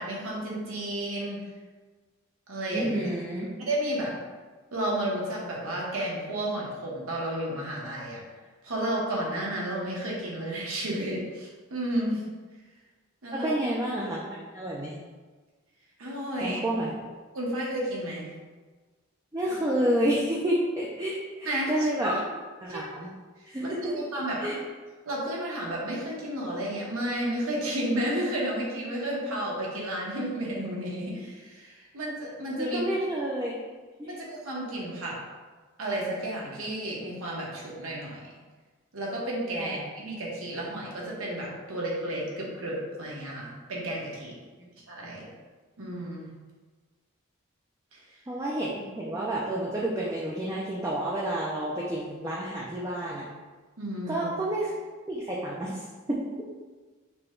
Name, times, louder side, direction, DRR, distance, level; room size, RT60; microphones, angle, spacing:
voice 1, 0.0-1.4 2.5-2.9 3.6-4.1 4.7-8.2 8.6-12.2 13.2-13.5 16.0-16.6 17.3-18.3 21.4-22.2 22.7-22.8 23.6-24.5 25.0-32.8 34.0-35.2 35.8-38.2 38.9-44.3 44.9-45.2 45.8-46.3 47.9-48.0 53.8-54.3, right 1 dB, 90° right, -3 dB, 1.2 m, -32 dB
voice 2, 2.7-3.5 13.3-14.9 16.4-16.9 19.3-22.1 22.6-23.1 23.5-23.8 24.4-24.5 32.6-33.6 34.0-34.1 39.6-39.7 44.6-44.7 45.0-45.2 48.3-53.3 54.1-54.7 55.1-56.2, right 1 dB, 15° right, -5 dB, 0.4 m, -29 dB
5.7 x 2.2 x 3.7 m, 1.4 s
head